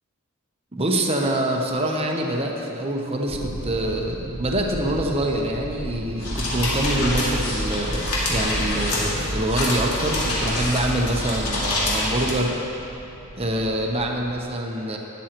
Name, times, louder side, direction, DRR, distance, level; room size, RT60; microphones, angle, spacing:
voice 1, 0.7-12.6 13.4-15.0, right 1 dB, 25° right, 1 dB, 0.8 m, -25 dB
sound 1, 3.3-14.4, right 1 dB, 80° right, 1.0 m, -34 dB
sound 2, 6.2-12.3, left 1 dB, 85° left, 2.2 m, -26 dB
12.5 x 10.0 x 3.0 m, 3.0 s
head